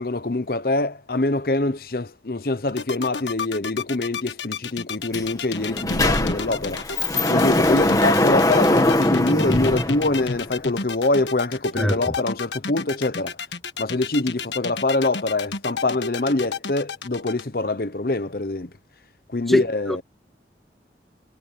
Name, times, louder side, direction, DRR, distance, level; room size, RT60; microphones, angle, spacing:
voice 1, 0.0-6.8 7.3-13.4 13.8-18.7 19.3-20.0, left 2 dB, 55° left, 0.9 m, -24 dB
sound 1, 2.7-17.4, left 5 dB, 90° left, 1.4 m, -31 dB
Sliding door, 5.1-5.2 5.6-10.6, left 1 dB, 20° left, 2.0 m, -21 dB
voice 2, 11.8-12.1 19.5-20.0, equal, ahead, 0.5 m, -24 dB
head